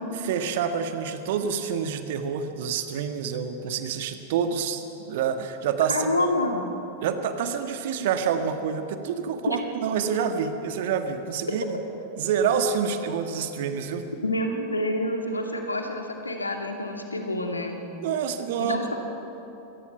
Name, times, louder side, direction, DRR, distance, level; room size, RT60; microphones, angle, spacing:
voice 1, 0.2-6.3 7.0-11.8 12.2-14.1 18.0-19.0, right 7 dB, 55° right, 8 dB, 1.6 m, -27 dB
voice 2, 5.9-6.6 9.5-9.6 14.2-17.8 18.6-19.0, left 1 dB, 80° left, 3 dB, 2.5 m, -27 dB
25.5 x 18.5 x 5.9 m, 3.0 s
figure-of-eight pair, 90°, 0 cm